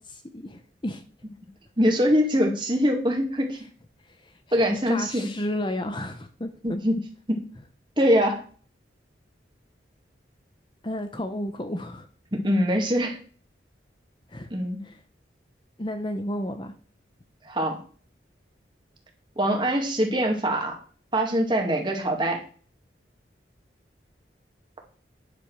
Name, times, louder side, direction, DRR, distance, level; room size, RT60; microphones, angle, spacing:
voice 1, 0.1-1.0 4.2-6.5 10.8-12.1 14.3-14.5 14.8-15.0 15.8-16.7, left 1 dB, 25° left, 8 dB, 0.7 m, -32 dB
voice 2, 1.8-3.6 4.5-5.3 6.6-7.0 7.3-7.4 8.0-8.4 12.3-13.2 14.5-14.8 17.4-17.8 19.4-20.8 21.1-22.4, equal, 25° right, 2 dB, 2.1 m, -23 dB
10.0 x 5.1 x 6.3 m, 0.43 s
head